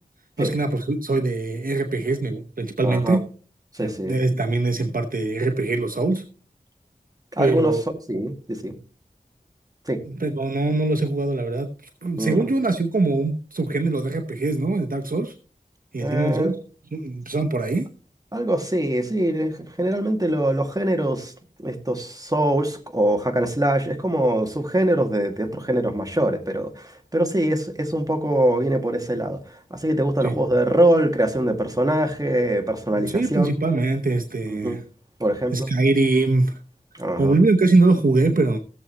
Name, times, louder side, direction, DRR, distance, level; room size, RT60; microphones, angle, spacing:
voice 1, 0.4-3.2 3.8-6.2 7.4-7.8 8.1-8.2 10.1-11.7 12.0-15.3 15.9-16.5 16.9-17.9 30.2-30.4 32.9-34.8 35.5-36.6 37.2-38.6, right 2 dB, 60° right, 0.9 m, -22 dB
voice 2, 2.8-3.2 3.7-4.2 7.4-7.8 8.1-8.8 9.9-10.0 12.2-12.5 16.0-16.5 18.3-21.3 21.6-29.4 29.7-33.5 34.5-34.8 35.2-35.7 36.9-37.3, right 1 dB, 25° right, 2.1 m, -23 dB
17.0 x 7.4 x 2.9 m
wide cardioid pair, 45°, 16 cm